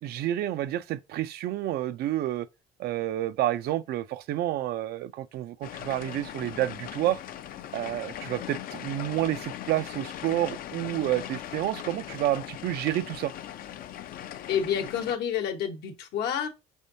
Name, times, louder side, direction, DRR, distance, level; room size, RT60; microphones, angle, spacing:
voice 1, 0.0-2.5 2.8-7.2 7.7-13.3, right 13 dB, 70° right, 0.4 m, -29 dB
sound 1, 5.6-15.2, left 11 dB, 60° left, 0.4 m, -39 dB
voice 2, 14.5-16.5, left 8 dB, 75° left, 1.0 m, -29 dB
5.2 x 3.5 x 2.7 m
cardioid pair, 110°, 17 cm